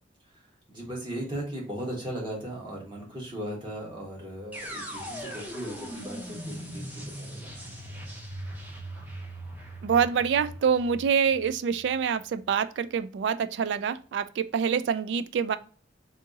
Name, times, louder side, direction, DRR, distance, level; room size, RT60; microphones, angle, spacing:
voice 1, 0.3-7.9, right 1 dB, 25° right, 1.5 m, -38 dB
sound 1, 4.5-12.5, equal, 10° right, 0.8 m, -40 dB
voice 2, 9.8-15.6, right 7 dB, 75° right, 0.3 m, -26 dB
3.6 x 2.9 x 3.7 m
head